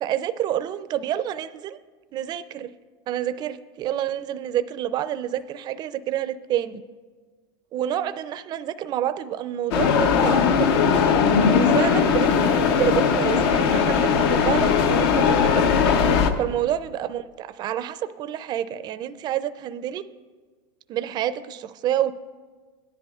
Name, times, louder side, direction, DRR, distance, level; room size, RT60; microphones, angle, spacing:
voice 1, 0.0-1.8 2.1-2.7 3.1-6.8 7.7-11.2 11.5-15.9 16.4-20.0 20.9-22.1, right 11 dB, 35° right, 13 dB, 0.4 m, -28 dB
sound 1, 9.7-16.3, left 6 dB, 75° left, 0.8 m, -19 dB
17.0 x 10.5 x 2.4 m, 1.4 s
supercardioid pair, 135°, 13 cm